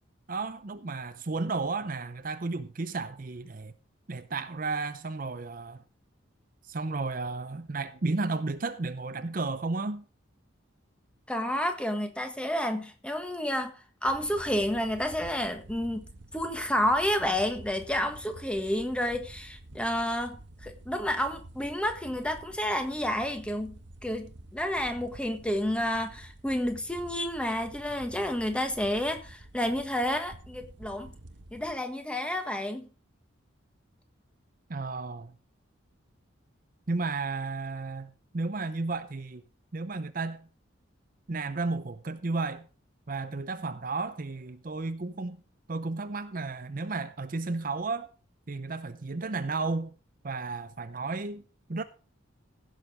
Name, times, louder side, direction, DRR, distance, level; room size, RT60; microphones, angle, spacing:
voice 1, 0.3-3.7 4.1-5.8 6.6-10.0 34.7-35.3 36.9-39.4 39.7-40.5 41.3-42.7 43.1-45.4 45.7-48.1 48.5-49.9 50.2-51.4 51.7-51.8, right 3 dB, 45° right, 0.6 m, -33 dB
voice 2, 11.3-13.8 14.0-31.1 31.5-32.9, left 1 dB, 5° left, 1.4 m, -30 dB
sound 1, 14.0-31.7, right 1 dB, 60° right, 1.1 m, -49 dB
16.0 x 6.6 x 5.0 m
head